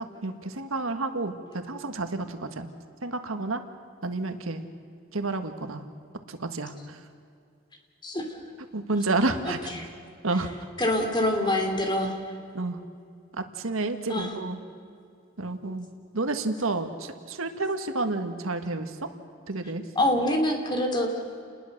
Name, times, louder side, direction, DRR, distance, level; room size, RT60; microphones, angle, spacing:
voice 1, 0.0-2.7 3.0-3.6 4.0-4.6 5.1-5.8 6.4-6.7 8.7-9.6 10.2-10.5 12.6-12.8 13.6-14.6 15.4-15.9 16.1-18.9 19.5-19.8, right 2 dB, 90° right, 7 dB, 1.7 m, -30 dB
voice 2, 9.4-9.9 10.8-12.2 14.1-14.3 19.9-21.1, left 1 dB, 20° left, 4 dB, 2.9 m, -25 dB
29.0 x 20.5 x 6.7 m, 2.3 s
head